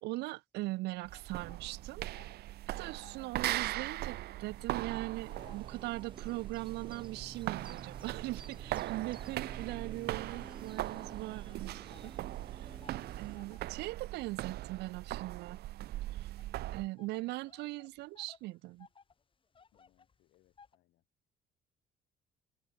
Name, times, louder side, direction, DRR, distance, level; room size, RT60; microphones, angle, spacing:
voice 1, 0.0-2.0 2.7-11.7 12.0-12.1 12.5-12.8 13.2-15.6 16.1-16.3 16.7-18.9, right 20 dB, 90° right, 1.7 m, -40 dB
sound 1, 0.9-2.5 2.8-6.4 7.0-9.1 9.7-20.8, left 5 dB, 30° left, 4.4 m, -63 dB
sound 2, 1.1-16.9, right 15 dB, 75° right, 1.2 m, -40 dB
sound 3, 4.4-13.4, right 5 dB, 30° right, 2.3 m, -51 dB
voice 2, 19.7-21.0, left 17 dB, 80° left, 5.9 m, -73 dB
open air
cardioid pair, 110°, 17 cm